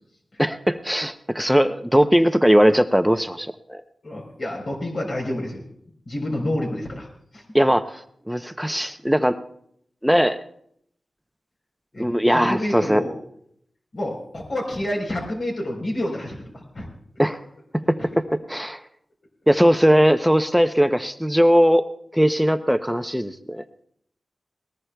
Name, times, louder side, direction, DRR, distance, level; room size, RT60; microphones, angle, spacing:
voice 1, 0.4-3.8 7.5-7.8 8.3-9.4 10.0-10.4 12.0-13.0 17.2-17.4 17.9-18.2 18.5-18.8 19.5-21.9 22.1-23.6, equal, ahead, 9 dB, 0.6 m, -19 dB
voice 2, 4.0-5.6 6.1-7.1 7.3-7.4 11.9-13.1 13.9-16.9 18.0-18.2, left 1 dB, 55° left, -1 dB, 3.8 m, -29 dB
20.5 x 18.5 x 2.3 m, 0.69 s
wide cardioid pair, 105°, 0 cm